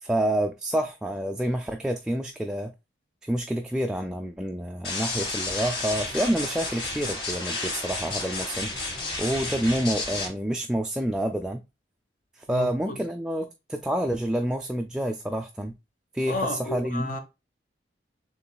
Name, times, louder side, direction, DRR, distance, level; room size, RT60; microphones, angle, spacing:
voice 1, 0.0-2.7 3.2-8.7 9.2-11.6 12.4-15.7 16.1-17.1, right 1 dB, 5° right, 0.3 m, -28 dB
sound 1, 4.8-10.3, left 2 dB, 65° left, 2.8 m, -31 dB
voice 2, 12.5-13.0 16.3-17.2, left 2 dB, 50° left, 0.9 m, -32 dB
6.9 x 3.1 x 2.2 m
head